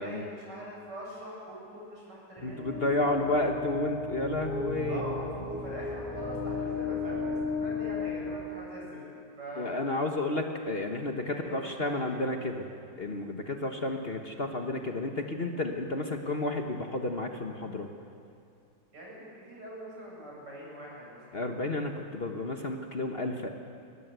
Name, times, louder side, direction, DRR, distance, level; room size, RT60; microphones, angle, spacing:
voice 1, 0.0-3.4 4.8-9.8 11.3-12.3 18.9-21.2, right 1 dB, 75° right, -4 dB, 8.5 m, -43 dB
voice 2, 2.4-5.0 9.6-12.7 13.0-17.9 21.3-23.5, left 2 dB, 35° left, 3 dB, 1.4 m, -31 dB
sound 1, 2.4-9.3, left 4 dB, 20° left, 5.1 m, -35 dB
22.5 x 20.0 x 8.1 m, 2.4 s
omnidirectional pair, 1.9 m